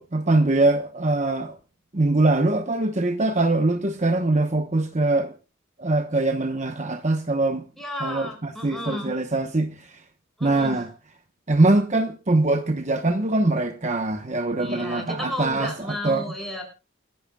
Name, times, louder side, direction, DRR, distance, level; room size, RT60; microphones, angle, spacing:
voice 1, 0.0-1.6 1.9-5.3 5.8-7.7 8.0-10.0 10.4-10.9 11.5-16.2, right 2 dB, 35° right, 1.0 m, -23 dB
voice 2, 7.8-9.1 10.4-10.8 14.6-16.6, left 1 dB, ahead, 6.5 m, -33 dB
29.5 x 11.5 x 2.3 m
head